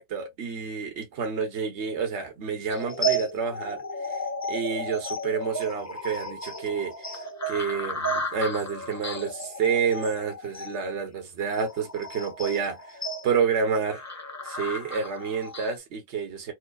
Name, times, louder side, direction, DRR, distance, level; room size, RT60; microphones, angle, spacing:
voice 1, 0.0-3.8 4.1-4.2 4.5-7.1 7.5-12.8 13.2-14.0 14.4-16.5, right 6 dB, 85° right, 1.1 m, -29 dB
sound 1, 2.7-15.7, right 1 dB, 25° left, 0.4 m, -33 dB
4.6 x 2.1 x 2.3 m
omnidirectional pair, 1.1 m